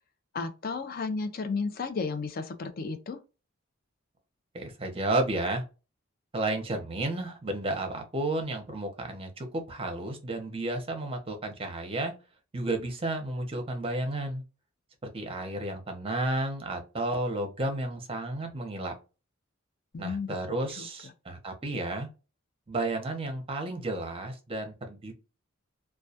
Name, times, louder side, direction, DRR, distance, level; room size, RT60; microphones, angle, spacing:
voice 1, 0.3-3.2 19.9-20.9, left 4 dB, 45° left, 0.4 m, -33 dB
voice 2, 4.5-5.6 6.3-12.1 12.5-14.4 15.0-18.9 20.0-22.1 22.7-25.2, right 2 dB, 25° right, 0.7 m, -32 dB
2.2 x 2.2 x 2.7 m
head